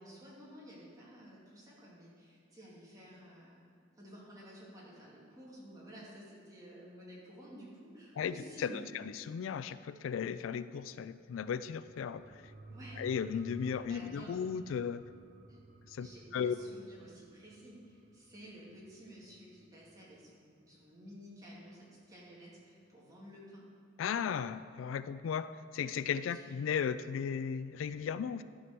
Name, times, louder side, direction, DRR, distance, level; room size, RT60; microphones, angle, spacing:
voice 1, 0.0-3.6 4.0-8.8 12.7-13.0 13.6-14.4 15.5-15.6 16.0-23.6 26.3-26.4, equal, 20° right, -6 dB, 2.5 m, -52 dB
voice 2, 8.2-12.2 13.0-15.0 15.9-16.1 16.3-16.5 24.0-28.4, left 7 dB, 85° left, 14 dB, 0.3 m, -36 dB
sound 1, 11.6-20.7 21.1-21.2, right 2 dB, 50° right, 0.7 m, -55 dB
12.5 x 4.7 x 6.0 m, 2.4 s
head